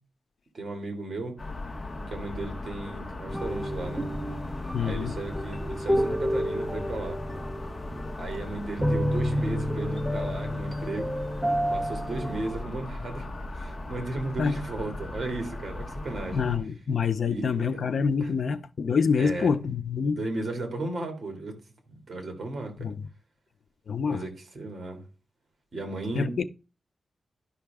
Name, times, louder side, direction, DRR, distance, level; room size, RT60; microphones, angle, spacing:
voice 1, 0.5-1.4 2.1-4.1 4.8-7.2 8.2-11.2 11.7-13.3 13.5-16.5 17.2-17.8 18.2-18.3 19.2-19.5 20.1-21.6 21.9-23.0 24.0-25.0 25.7-26.4, right 2 dB, 50° right, 2.4 m, -35 dB
sound 1, 1.4-16.6, left 2 dB, 30° left, 1.1 m, -38 dB
sound 2, 3.3-12.6, equal, 5° right, 0.7 m, -30 dB
voice 2, 4.7-5.2 14.4-14.5 16.3-20.2 22.8-23.0 23.9-24.2 26.2-26.4, left 5 dB, 65° left, 0.6 m, -26 dB
11.5 x 5.8 x 3.5 m
wide cardioid pair, 135°, 0 cm